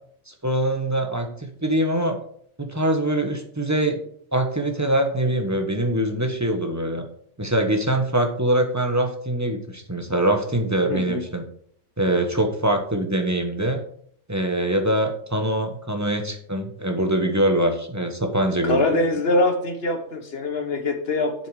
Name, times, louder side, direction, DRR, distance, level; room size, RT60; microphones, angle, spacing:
voice 1, 0.3-2.2 2.6-4.0 4.3-7.0 7.4-11.4 12.0-13.8 14.3-18.9, right 1 dB, 15° right, 4 dB, 1.0 m, -23 dB
voice 2, 10.9-11.2 18.6-21.3, left 2 dB, 50° left, 6 dB, 1.5 m, -23 dB
7.3 x 7.0 x 4.8 m, 0.62 s
omnidirectional pair, 1.3 m